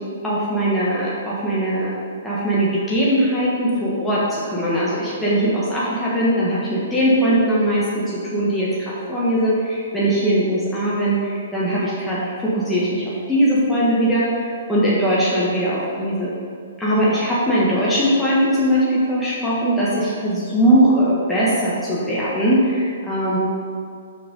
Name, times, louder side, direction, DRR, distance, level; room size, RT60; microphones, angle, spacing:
voice 1, 0.2-1.9 2.2-16.3 16.8-23.4, equal, 5° left, -9 dB, 1.4 m, -20 dB
6.0 x 4.6 x 5.4 m, 2.3 s
hypercardioid pair, 130°, 0 cm